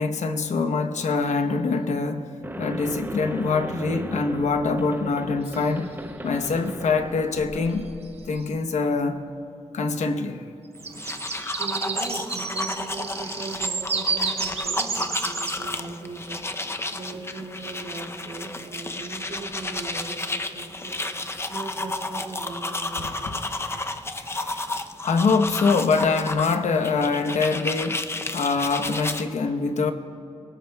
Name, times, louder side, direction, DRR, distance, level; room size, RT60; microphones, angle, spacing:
voice 1, 0.0-2.3 2.6-5.9 6.2-7.9 8.3-9.2 9.7-10.4 23.0-23.4 24.3-24.6 25.0-29.9, left 4 dB, 80° left, 7 dB, 1.0 m, -24 dB
sound 1, 1.1-1.2 5.4-6.0 7.7-7.8 8.0-8.4 10.6-15.6, right 4 dB, 60° right, 1.2 m, -30 dB
sound 2, 2.4-8.5, right 2 dB, 15° right, 0.7 m, -37 dB
voice 2, 6.2-6.5 10.8-11.0 11.3-16.4 16.9-21.0 21.5-23.5 27.7-27.8, right 3 dB, 85° right, -4 dB, 2.8 m, -39 dB
sound 3, 10.8-29.2, left 2 dB, 20° left, 0.6 m, -32 dB
27.0 x 18.0 x 2.3 m, 2.6 s
cardioid pair, 70°, 12 cm